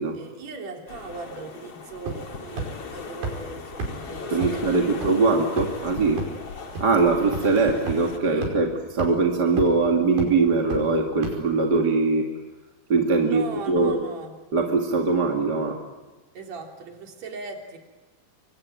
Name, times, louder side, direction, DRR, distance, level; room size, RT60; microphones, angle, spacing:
voice 1, 0.1-5.0 8.2-8.7 13.2-14.3 16.3-17.8, right 4 dB, 45° right, 3 dB, 4.3 m, -39 dB
sound 1, 0.9-8.2, left 5 dB, 40° left, 3.2 m, -38 dB
sound 2, 2.1-2.3 2.6-2.7 3.2-3.3 3.8-3.9 4.4-4.5 5.0-5.1 5.6-5.8 6.2-6.3 6.8-6.9 7.3-7.4 7.9-8.0 8.4-8.5 9.0-9.1 9.6-9.8 10.2-10.3 10.7-10.8 11.2-11.3, right 3 dB, 85° right, 7.1 m, -29 dB
voice 2, 4.3-6.2 6.8-12.3 12.9-14.0 14.5-15.8, right 3 dB, 30° right, 2 dB, 2.3 m, -22 dB
26.0 x 24.5 x 9.0 m, 1.2 s
omnidirectional pair, 4.3 m